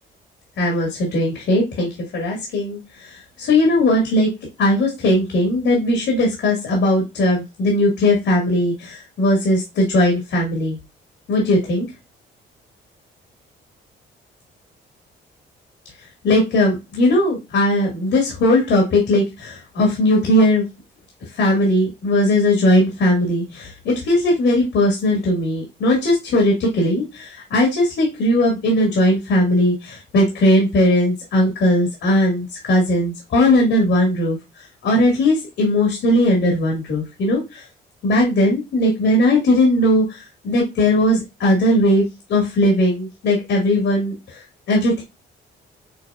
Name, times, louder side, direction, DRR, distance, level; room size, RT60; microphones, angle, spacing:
voice 1, 0.6-4.3 4.6-10.8 11.3-11.9 16.2-20.6 21.3-37.6 38.0-42.0 42.3-44.4 44.7-45.0, left 1 dB, 75° left, 0 dB, 2.1 m, -18 dB
6.3 x 3.1 x 2.5 m, 0.24 s
cardioid pair, 90°, 20 cm